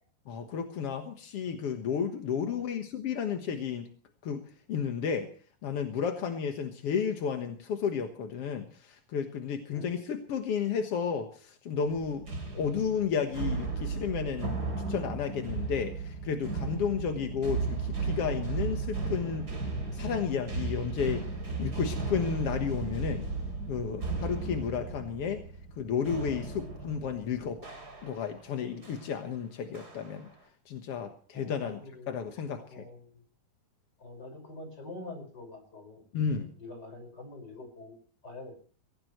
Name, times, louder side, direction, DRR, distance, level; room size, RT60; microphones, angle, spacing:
voice 1, 0.3-3.9 4.2-4.4 4.7-5.3 5.6-12.2 12.5-14.6 14.9-19.5 19.9-21.3 21.6-23.3 23.7-25.4 25.8-30.3 30.7-31.8 32.1-32.8 36.1-36.5, left 7 dB, 60° left, 5 dB, 1.7 m, -32 dB
sound 1, 11.9-28.4 28.8-29.1 29.7-30.3, right 4 dB, 25° right, 3.5 m, -35 dB
voice 2, 31.3-32.2 32.7-33.2 34.0-36.0 36.6-37.9 38.2-38.6, left 2 dB, 25° left, 3 dB, 6.0 m, -45 dB
23.0 x 17.0 x 3.2 m, 0.43 s
omnidirectional pair, 4.5 m